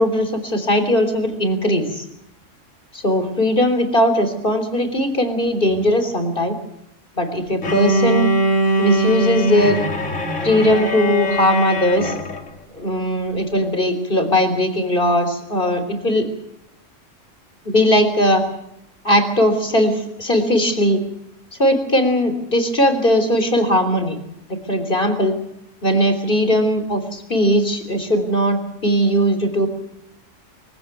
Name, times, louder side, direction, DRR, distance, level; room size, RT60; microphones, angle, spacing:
voice 1, 0.0-2.0 2.9-6.6 7.2-8.3 8.8-9.8 10.4-12.1 12.7-16.3 17.7-18.4 19.0-21.0 21.6-24.2 24.7-25.3 25.8-29.7, equal, 45° left, 8 dB, 3.8 m, -19 dB
Bowed string instrument, 7.6-12.5, equal, 75° left, 2.7 m, -21 dB
24.0 x 15.5 x 9.1 m, 0.80 s
omnidirectional pair, 1.3 m